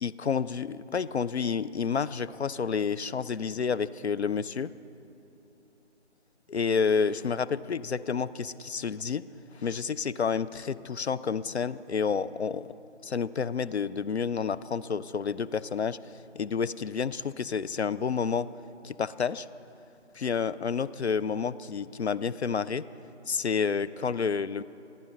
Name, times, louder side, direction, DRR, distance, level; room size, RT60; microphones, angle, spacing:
voice 1, 0.0-4.7 6.5-9.2 9.5-12.7 13.0-18.5 18.8-19.5 20.1-22.8 23.3-24.6, left 6 dB, 65° left, 17 dB, 0.5 m, -29 dB
22.0 x 15.0 x 3.9 m, 2.8 s
figure-of-eight pair, 160°, 35 cm